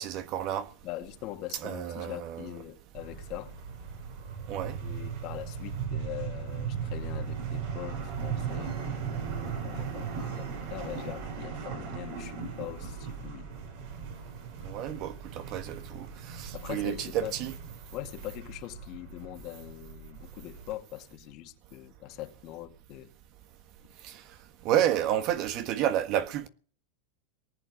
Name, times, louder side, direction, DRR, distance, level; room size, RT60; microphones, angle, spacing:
voice 1, 0.0-0.7 1.6-2.5 4.5-4.8 14.6-17.5 24.0-24.2 24.6-26.5, right 11 dB, 50° right, 1.5 m, -30 dB
voice 2, 0.8-3.6 4.8-13.5 16.5-17.3 17.9-23.1, left 15 dB, 50° left, 2.1 m, -42 dB
sound 1, 2.9-20.7, right 6 dB, 65° right, 6.5 m, -38 dB
19.0 x 8.3 x 8.6 m
supercardioid pair, 125°, 0 cm